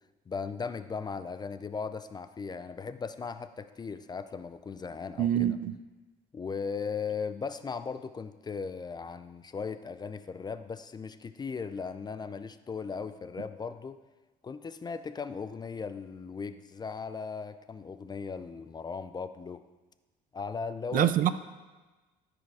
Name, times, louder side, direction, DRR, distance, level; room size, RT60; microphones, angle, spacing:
voice 1, 0.3-5.5 6.3-14.0 14.4-19.6 20.3-21.1, left 5 dB, 25° left, 0.4 m, -37 dB
voice 2, 5.2-5.7 20.9-21.3, right 11 dB, 55° right, 0.5 m, -25 dB
13.5 x 5.0 x 4.8 m
cardioid pair, 110°, 17 cm